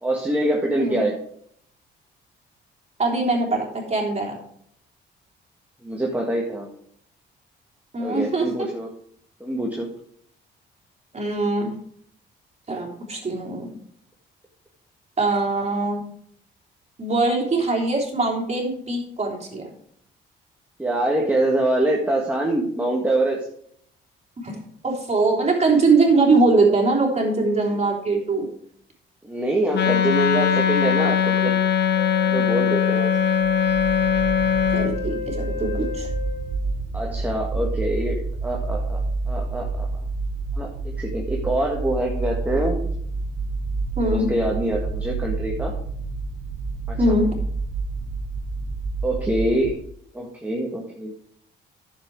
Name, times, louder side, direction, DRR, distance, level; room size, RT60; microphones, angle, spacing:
voice 1, 0.0-1.2 5.8-6.7 8.0-8.9 9.4-9.9 20.8-23.4 29.2-31.5 32.2-33.1 36.9-39.0 39.3-39.9 40.6-42.8 44.0-45.7 46.9-47.0 49.0-49.7 50.1-51.1, right 1 dB, 10° right, -1 dB, 1.8 m, -24 dB
voice 2, 3.0-4.4 7.9-8.7 11.1-11.7 12.7-13.8 15.2-16.0 17.0-19.7 24.4-24.6 24.8-28.5 34.7-36.1 44.0-44.3 47.0-47.3, right 3 dB, 35° right, 0 dB, 3.3 m, -22 dB
Wind instrument woodwind instrument, 29.7-34.9, left 8 dB, 60° left, 0.9 m, -20 dB
Wind instrument woodwind instrument 2, 31.9-36.7, left 6 dB, 85° left, 2.8 m, -32 dB
sound 1, 33.4-49.7, right 3 dB, 60° right, 1.5 m, -29 dB
10.0 x 7.3 x 4.7 m, 0.65 s
cardioid pair, 90°, 20 cm